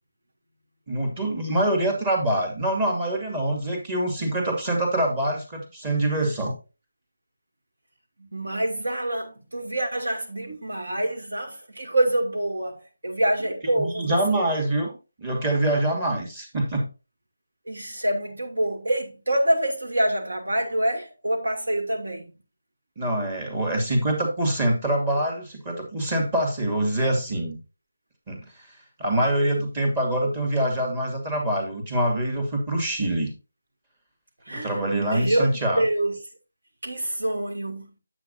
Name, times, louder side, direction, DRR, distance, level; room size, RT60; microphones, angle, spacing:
voice 1, 0.9-6.5 13.8-14.9 15.2-16.8 23.0-27.6 28.3-28.4 29.0-33.3 34.5-35.8, right 1 dB, 20° right, 2.4 m, -25 dB
voice 2, 8.2-14.4 17.7-22.3 34.4-36.2 36.8-37.9, right 1 dB, 65° right, 2.7 m, -26 dB
9.3 x 7.7 x 2.7 m
figure-of-eight pair, 155°, 0 cm